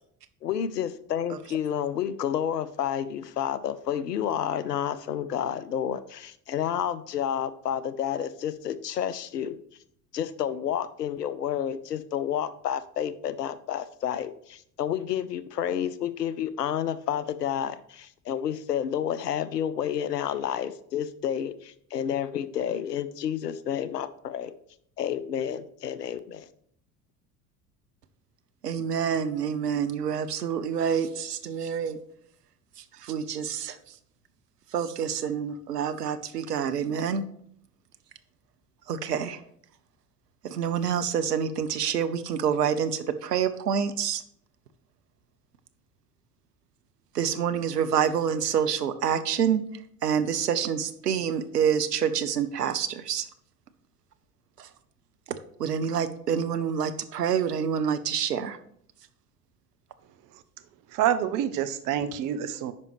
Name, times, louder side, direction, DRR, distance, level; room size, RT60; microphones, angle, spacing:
voice 1, 0.4-9.6 10.1-24.5 25.0-26.5, left 9 dB, 80° left, 15 dB, 0.6 m, -30 dB
voice 2, 28.6-32.0 32.9-33.8 34.7-37.2 38.9-39.4 40.4-44.2 47.1-49.6 50.0-53.3 54.6-54.7 55.3-58.6, right 8 dB, 80° right, 11 dB, 0.7 m, -27 dB
voice 3, 60.9-62.7, right 10 dB, 40° right, 10 dB, 0.7 m, -27 dB
9.6 x 5.1 x 3.0 m, 0.68 s
figure-of-eight pair, 65°, 47 cm